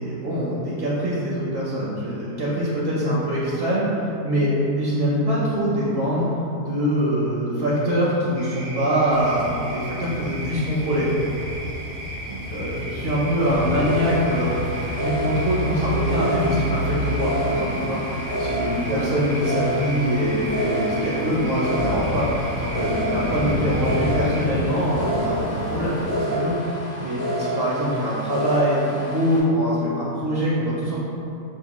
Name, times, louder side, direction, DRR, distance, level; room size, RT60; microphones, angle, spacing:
voice 1, 0.0-4.0 4.2-4.5 4.8-6.3 6.6-11.1 12.3-14.6 15.0-18.0 18.4-22.3 22.6-26.5 27.0-31.0, equal, 55° right, -7 dB, 0.7 m, -23 dB
sound 1, 8.4-24.5, right 2 dB, 75° right, 1.2 m, -37 dB
sound 2, 9.1-26.1, left 1 dB, 65° left, 0.9 m, -31 dB
sound 3, 13.4-29.4, equal, 30° left, 0.5 m, -29 dB
5.0 x 2.2 x 2.9 m, 2.8 s
omnidirectional pair, 1.5 m